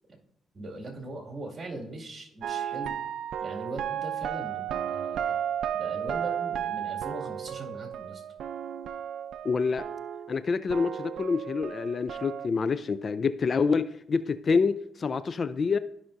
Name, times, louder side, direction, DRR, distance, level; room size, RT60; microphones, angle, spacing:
voice 1, 0.5-3.0 3.4-5.4 5.8-8.2, right 2 dB, 35° right, 2.2 m, -40 dB
sound 1, 2.4-10.4 10.7-12.5, right 9 dB, 70° right, 0.4 m, -33 dB
voice 2, 9.4-9.8 10.3-15.8, left 5 dB, 40° left, 0.4 m, -27 dB
13.5 x 5.7 x 2.6 m
cardioid pair, 90°, 0 cm